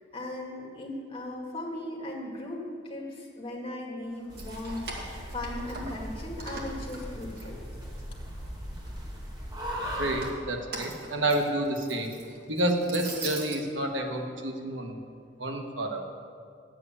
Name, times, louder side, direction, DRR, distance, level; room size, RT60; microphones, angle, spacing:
voice 1, 0.1-7.5, left 1 dB, 30° left, -2 dB, 2.0 m, -38 dB
Keys jangling, 4.2-6.1 6.4-8.0 8.4-9.2 9.9-13.6, right 2 dB, 55° right, 1.9 m, -41 dB
sound 1, 4.3-10.3, equal, 20° right, 2.0 m, -38 dB
voice 2, 10.0-12.1 12.5-15.0 15.4-16.0, right 1 dB, 90° right, 3 dB, 1.3 m, -29 dB
10.0 x 7.8 x 8.3 m, 2.4 s
head